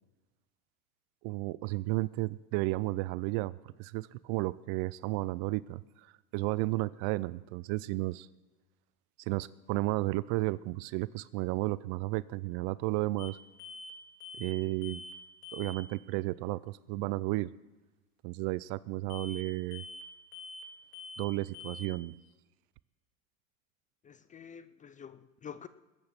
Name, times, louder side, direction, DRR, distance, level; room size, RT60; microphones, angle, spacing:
voice 1, 1.2-5.8 6.3-8.3 9.2-13.4 14.4-15.0 15.5-17.5 18.2-19.8 21.2-22.2, right 20 dB, 50° right, 21 dB, 0.5 m, -33 dB
sound 1, 13.2-13.3 13.6-13.9 14.2-14.6 14.8-15.2 15.4-15.8 19.1-19.4 19.7-20.1 20.3-20.7 20.9-21.3 21.5-21.9, left 2 dB, 75° left, 3.2 m, -45 dB
voice 2, 24.0-25.7, left 7 dB, 20° left, 13 dB, 0.4 m, -48 dB
21.0 x 9.0 x 5.9 m, 1.2 s
hypercardioid pair, 105°, 45 cm